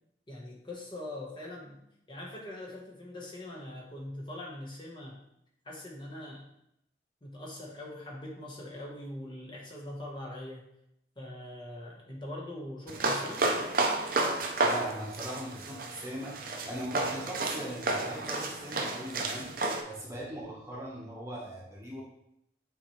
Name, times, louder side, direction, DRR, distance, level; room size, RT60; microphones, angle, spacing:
voice 1, 0.3-1.8 2.1-5.2 5.6-6.4 7.2-10.7 11.2-13.5, left 1 dB, 25° left, -3 dB, 1.3 m, -42 dB
sound 1, 12.9-19.8, right 2 dB, 50° right, 0.7 m, -31 dB
voice 2, 14.6-19.5 19.8-22.0, equal, 15° right, -3 dB, 1.2 m, -40 dB
8.7 x 4.4 x 3.2 m, 0.78 s
head